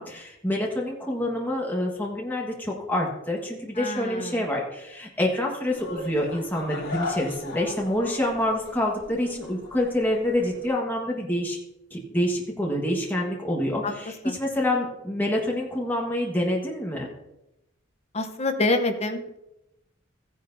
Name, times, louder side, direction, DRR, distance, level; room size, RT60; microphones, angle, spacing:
voice 1, 0.0-11.6 11.9-17.1, left 1 dB, 10° left, -2 dB, 1.5 m, -27 dB
voice 2, 3.8-4.4 13.8-13.9 14.2-14.3 18.1-19.4, left 2 dB, 30° left, 6 dB, 0.9 m, -26 dB
sound 1, 5.7-10.7, left 3 dB, 75° left, 3.6 m, -38 dB
14.5 x 10.0 x 2.7 m, 0.89 s
head